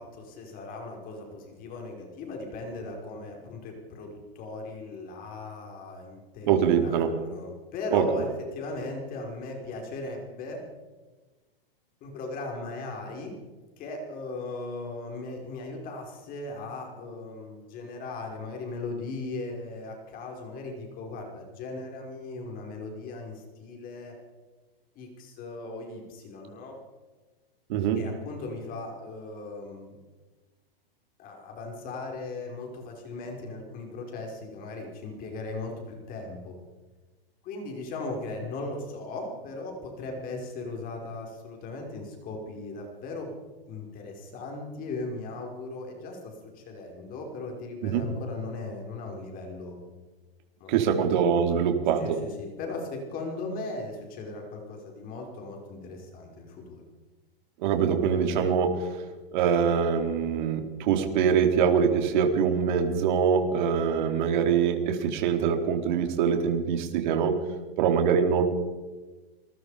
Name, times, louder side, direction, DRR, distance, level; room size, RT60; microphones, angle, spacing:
voice 1, 0.0-10.6 12.0-13.3 13.8-24.2 25.0-26.8 28.0-30.0 31.2-36.5 37.4-43.4 43.7-49.8 50.6-51.1 52.0-56.8, left 2 dB, 30° left, 2 dB, 5.3 m, -38 dB
voice 2, 6.5-7.1 7.9-8.0 27.7-28.0 47.8-48.0 50.7-52.2 57.6-59.0 59.3-67.3 67.8-68.4, right 7 dB, 50° right, 4 dB, 3.8 m, -24 dB
28.0 x 20.5 x 5.1 m, 1.3 s
hypercardioid pair, 145°, 30 cm